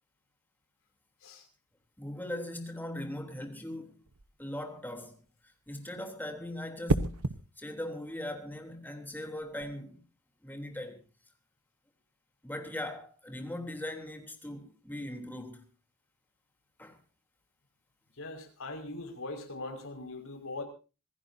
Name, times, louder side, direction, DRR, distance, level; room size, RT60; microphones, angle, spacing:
voice 1, 2.0-4.0 4.4-5.2 5.7-7.3 7.6-10.0 10.4-11.0 12.4-15.6 16.8-17.0, left 1 dB, 10° left, 3.4 m, -40 dB
sound 1, 4.0-4.4 6.9-7.4 9.4-9.7, right 2 dB, 75° right, 1.1 m, -30 dB
voice 2, 18.2-20.6, left 2 dB, 65° left, 5.6 m, -41 dB
26.0 x 16.0 x 2.8 m
head